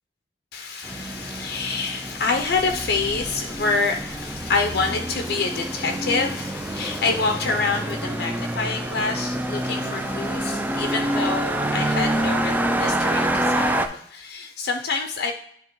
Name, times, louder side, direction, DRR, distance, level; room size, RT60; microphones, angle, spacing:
voice 1, 0.5-15.3, left 4 dB, 65° left, 4 dB, 0.5 m, -27 dB
sound 1, 0.8-13.9, right 1 dB, 10° right, 0.3 m, -27 dB
9.9 x 3.5 x 3.0 m, 0.68 s
head